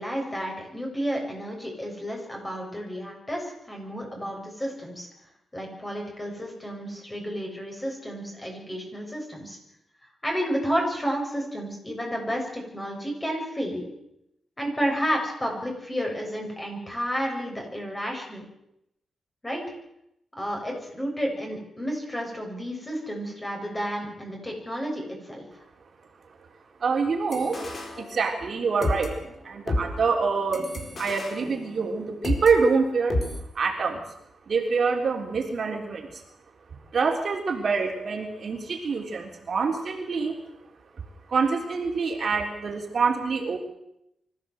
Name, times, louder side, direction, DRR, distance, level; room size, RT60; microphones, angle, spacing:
voice 1, 0.0-5.1 5.5-9.6 10.2-13.9 14.6-18.4 19.4-19.6 20.4-25.5, equal, 15° left, 1 dB, 7.5 m, -31 dB
voice 2, 26.8-27.7 28.0-30.6 31.0-33.2 33.5-34.0 34.5-36.2 36.9-40.4 41.3-43.6, right 5 dB, 50° right, 1 dB, 3.5 m, -26 dB
sound 1, 27.3-28.5 28.8-32.5 33.1-33.4, left 1 dB, 40° left, 4.3 m, -31 dB
24.5 x 15.0 x 7.9 m, 0.82 s
cardioid pair, 115°, 0 cm